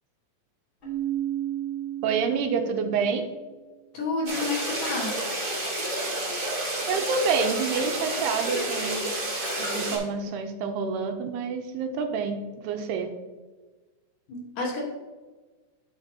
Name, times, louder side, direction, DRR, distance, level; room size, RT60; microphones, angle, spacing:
Keyboard (musical), 0.8-3.5, right 12 dB, 30° left, 3.0 m, -33 dB
voice 1, 2.0-3.3 6.9-9.1 9.6-13.1, right 5 dB, 85° right, 6 dB, 2.6 m, -28 dB
voice 2, 3.9-5.2 14.3-14.8, left 3 dB, 60° left, -2 dB, 2.7 m, -30 dB
sound 1, 4.3-10.0, right 1 dB, 35° right, 1.7 m, -30 dB
11.0 x 6.0 x 2.8 m, 1.3 s
omnidirectional pair, 4.8 m